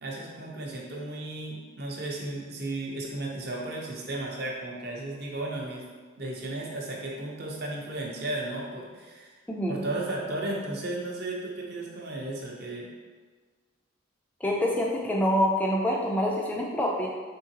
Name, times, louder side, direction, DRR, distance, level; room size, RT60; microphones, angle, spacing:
voice 1, 0.0-5.8 6.2-9.3 9.7-12.9, right 2 dB, 50° right, -2 dB, 0.7 m, -34 dB
voice 2, 9.5-9.8 14.4-17.1, equal, 5° left, -2 dB, 0.3 m, -26 dB
3.7 x 3.6 x 2.8 m, 1.4 s
head